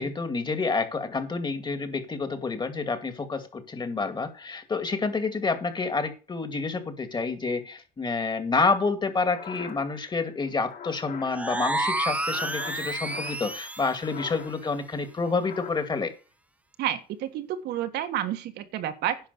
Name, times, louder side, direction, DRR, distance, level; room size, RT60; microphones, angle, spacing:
voice 1, 0.0-16.1, left 4 dB, 25° left, 9 dB, 2.3 m, -28 dB
sound 1, 9.2-13.5 13.9-14.7 15.0-15.7, left 7 dB, 55° left, 4.2 m, -43 dB
sound 2, 11.3-14.0, right 1 dB, 10° right, 0.8 m, -30 dB
voice 2, 16.8-19.2, right 11 dB, 80° right, 8 dB, 1.6 m, -30 dB
10.5 x 6.0 x 6.9 m, 0.34 s
cardioid pair, 110°, 17 cm